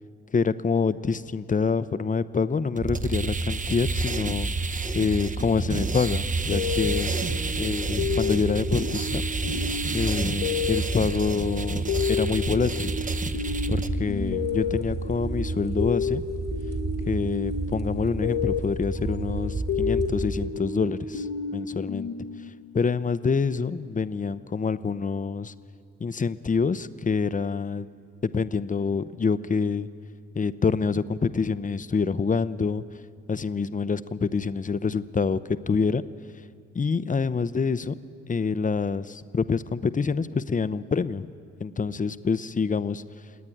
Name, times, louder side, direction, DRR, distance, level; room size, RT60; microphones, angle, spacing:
voice 1, 0.3-4.5 4.9-7.1 7.6-9.2 9.9-13.0 13.7-16.2 17.1-21.3 21.5-22.1 22.7-25.5 26.0-27.9 28.3-29.9 30.3-32.8 33.3-36.0 36.7-38.0 38.3-41.3 41.6-43.0, left 5 dB, 20° left, 15 dB, 0.7 m, -26 dB
sound 1, 2.8-13.9, right 4 dB, 20° right, 0.9 m, -33 dB
sound 2, 2.8-20.5, right 3 dB, 45° right, 2.7 m, -31 dB
sound 3, 6.5-22.9, left 6 dB, 75° left, 1.3 m, -31 dB
28.0 x 9.6 x 9.9 m, 2.4 s
hypercardioid pair, 45°, 37 cm